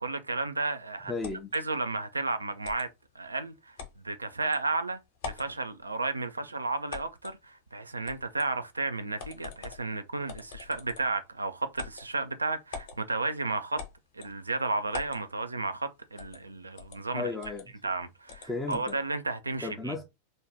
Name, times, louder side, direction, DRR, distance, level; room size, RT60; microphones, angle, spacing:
voice 1, 0.0-1.1 1.5-2.9 3.1-3.8 4.0-5.0 5.3-13.8 14.1-17.3 17.8-20.0, right 3 dB, 80° right, 0.4 m, -33 dB
voice 2, 1.1-1.5 17.1-17.8 18.4-19.0 19.6-20.0, left 3 dB, 10° left, 0.5 m, -34 dB
sound 1, 1.2-1.6 2.6-2.9 3.8-4.0 4.5-4.6 5.1-5.5 6.9-7.4 8.1-8.5 9.2-9.8 10.3-11.2 11.7-12.1 12.7-13.0 13.8-14.3 14.9-15.2 16.2-16.4 16.8-17.0 17.4-17.6 18.3-19.0, left 5 dB, 50° left, 0.9 m, -43 dB
2.6 x 2.3 x 3.5 m
figure-of-eight pair, 90°, 0 cm